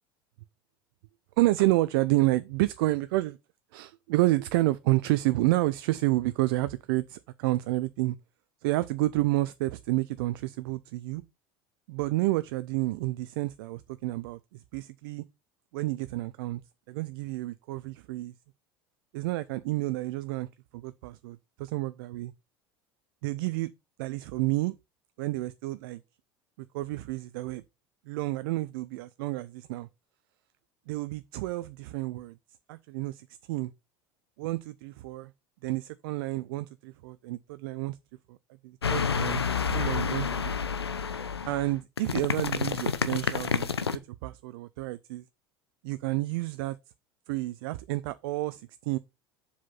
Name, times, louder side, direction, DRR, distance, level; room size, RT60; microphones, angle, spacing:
voice 1, 1.4-3.4 3.7-8.2 8.6-11.2 11.9-15.2 15.7-16.6 16.9-18.3 19.1-20.5 20.7-22.3 23.2-23.7 24.0-24.7 25.2-26.0 26.7-27.6 28.1-29.9 30.9-32.4 32.7-33.7 34.4-35.3 35.6-38.0 38.3-38.4 38.6-40.5 41.5-45.2 45.8-46.8 47.3-49.0, right 19 dB, 60° right, 0.5 m, -30 dB
sound 1, 38.8-44.0, left 6 dB, 85° left, 0.7 m, -29 dB
7.4 x 5.6 x 5.7 m
figure-of-eight pair, 70°, 13 cm